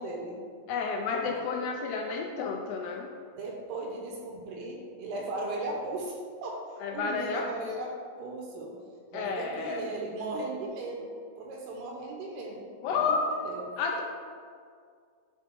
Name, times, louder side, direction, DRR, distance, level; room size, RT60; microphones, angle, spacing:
voice 1, 0.0-0.6 1.2-1.4 3.4-6.6 6.9-8.8 9.1-13.7, right 2 dB, 80° right, 0 dB, 2.6 m, -37 dB
voice 2, 0.7-3.1 6.8-7.5 9.1-9.9 12.8-13.3 13.8-14.0, left 5 dB, 80° left, 1 dB, 2.4 m, -30 dB
10.5 x 4.0 x 4.5 m, 2.1 s
omnidirectional pair, 5.1 m